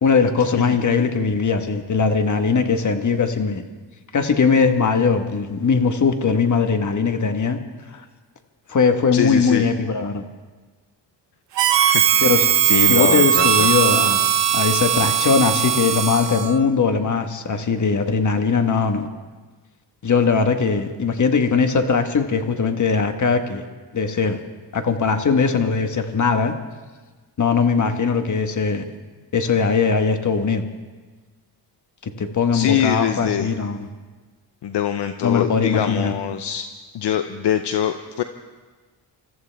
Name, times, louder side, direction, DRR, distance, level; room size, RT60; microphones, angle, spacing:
voice 1, 0.0-3.6 4.1-7.6 7.9-8.0 8.7-10.2 12.2-12.5 12.9-19.1 20.0-23.6 23.9-24.4 24.7-26.5 27.4-28.8 29.3-30.6 32.0-33.9 35.2-36.1, left 5 dB, 40° left, 7 dB, 1.5 m, -20 dB
voice 2, 9.1-9.6 11.6-13.7 32.5-33.5 34.6-36.7 36.9-38.2, left 10 dB, 65° left, 8 dB, 0.8 m, -24 dB
Harmonica, 11.6-16.6, right 10 dB, 70° right, 1.0 m, -18 dB
27.0 x 14.0 x 3.5 m, 1.3 s
cardioid pair, 90°, 44 cm